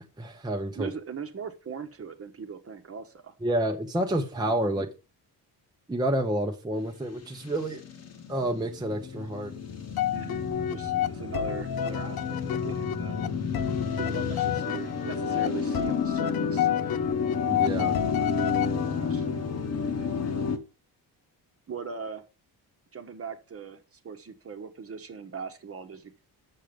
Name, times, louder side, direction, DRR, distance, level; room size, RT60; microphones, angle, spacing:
voice 1, 0.2-0.9 3.4-4.9 5.9-7.8 8.3-9.5 17.4-18.0, right 1 dB, 10° right, 2 dB, 0.9 m, -29 dB
voice 2, 0.7-3.3 4.4-4.6 10.1-10.4 10.7-13.2 14.0-16.7 18.8-19.3 21.7-22.2 22.9-26.2, right 6 dB, 35° right, 7 dB, 1.2 m, -40 dB
sound 1, 7.3-20.6, left 5 dB, 40° left, 1.2 m, -31 dB
sound 2, 10.0-19.2, left 10 dB, 65° left, 0.7 m, -30 dB
7.5 x 6.5 x 5.1 m, 0.31 s
wide cardioid pair, 150°, 39 cm